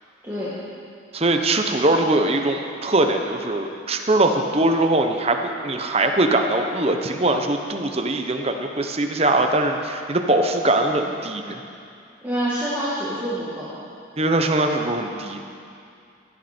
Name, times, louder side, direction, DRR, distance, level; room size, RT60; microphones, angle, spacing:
voice 1, 0.2-0.6 12.2-13.7, right 1 dB, 10° right, -10 dB, 1.8 m, -27 dB
voice 2, 1.1-11.6 14.2-15.5, right 2 dB, 30° right, 4 dB, 0.9 m, -21 dB
16.5 x 12.0 x 4.4 m, 2.5 s
head